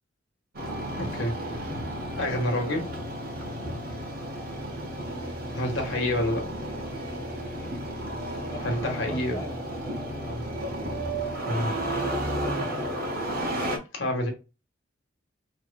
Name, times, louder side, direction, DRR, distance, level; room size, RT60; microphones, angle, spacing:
Engine starting, 0.5-13.8, right 1 dB, 50° right, 1.1 m, -32 dB
voice 1, 1.0-1.4 2.2-2.9 5.2-6.5 8.6-9.4 11.4-11.7 13.9-14.3, left 1 dB, 75° left, 1.3 m, -28 dB
voice 2, 8.5-10.6, left 2 dB, 15° left, 1.3 m, -41 dB
4.6 x 3.1 x 2.2 m
head